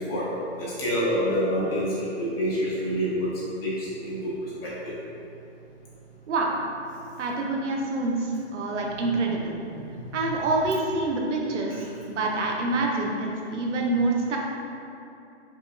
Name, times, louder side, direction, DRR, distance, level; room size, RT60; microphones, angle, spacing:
voice 1, 0.6-3.3 3.6-4.3 4.6-4.9 9.3-9.5, equal, 55° left, -9 dB, 1.5 m, -27 dB
voice 2, 6.3-6.6 7.2-9.5 10.1-14.4, right 2 dB, 90° right, 0 dB, 0.7 m, -26 dB
5.1 x 2.2 x 2.4 m, 2.7 s
hypercardioid pair, 155°, 35 cm